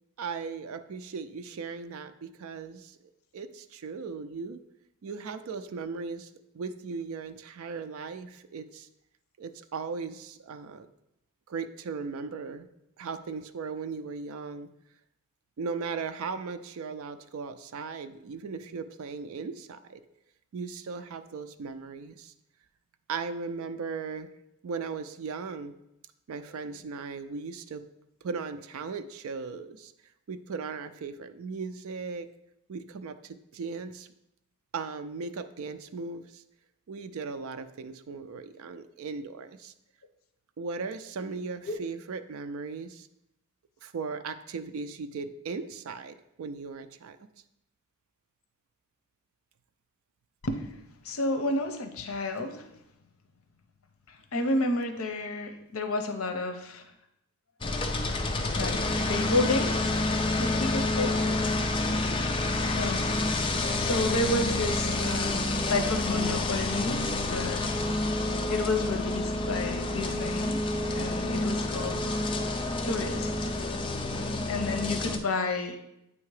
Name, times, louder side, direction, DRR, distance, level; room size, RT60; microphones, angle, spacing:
voice 1, 0.2-4.6 5.0-6.3 6.5-8.9 9.4-10.9 11.5-12.7 13.0-14.7 15.6-20.0 20.5-22.3 23.1-24.3 24.6-25.8 26.3-27.8 28.2-29.9 30.3-32.3 32.7-34.1 34.7-36.4 36.9-39.7 40.6-43.1 43.8-47.2, right 4 dB, 70° right, 9 dB, 0.4 m, -37 dB
voice 2, 51.0-52.7 54.1-56.8 58.6-58.8 59.1-60.0 60.4-61.2 62.7-63.1 63.8-67.0 67.3-67.6 68.5-70.6 70.9-72.0 72.8-73.5 74.5-75.8, left 2 dB, 70° left, 6 dB, 0.7 m, -31 dB
sound 1, 57.6-75.2, left 2 dB, 25° left, 0.4 m, -28 dB
8.3 x 2.8 x 4.7 m, 0.83 s
head